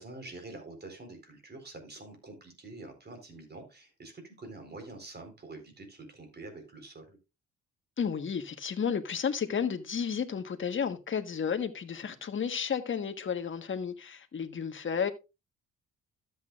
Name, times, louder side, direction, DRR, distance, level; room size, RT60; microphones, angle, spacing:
voice 1, 0.0-7.2, right 2 dB, 35° right, 4.2 m, -46 dB
voice 2, 8.0-15.1, left 7 dB, 40° left, 1.4 m, -32 dB
13.0 x 8.3 x 2.4 m
cardioid pair, 90°, 30 cm